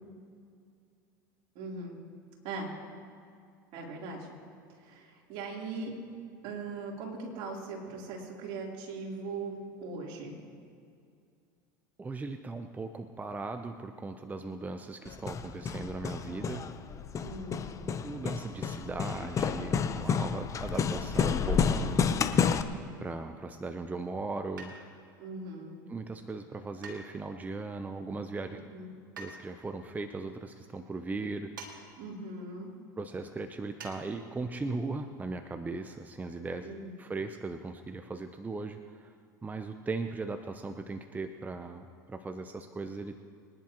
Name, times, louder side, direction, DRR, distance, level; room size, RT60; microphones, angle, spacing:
voice 1, 1.6-2.0 2.4-2.7 3.7-4.3 4.8-5.9 6.4-10.3 17.2-17.7 25.2-25.8 28.5-29.0 32.0-32.7 36.6-36.9, right 3 dB, 60° right, -2 dB, 3.6 m, -40 dB
voice 2, 12.0-16.7 18.0-22.4 23.0-24.7 25.9-28.6 29.2-31.8 33.0-36.7 37.0-39.2 39.4-43.2, right 3 dB, 15° right, 7 dB, 0.7 m, -38 dB
Hammer, 15.1-22.6, left 6 dB, 30° left, 0.8 m, -30 dB
sound 1, 24.6-25.1 26.8-27.5 29.2-29.4 31.6-31.8 32.1-32.2 33.8-34.0 34.3-34.4, right 3 dB, 90° right, 2.2 m, -45 dB
24.0 x 10.5 x 3.0 m, 2.3 s
hypercardioid pair, 85°, 10 cm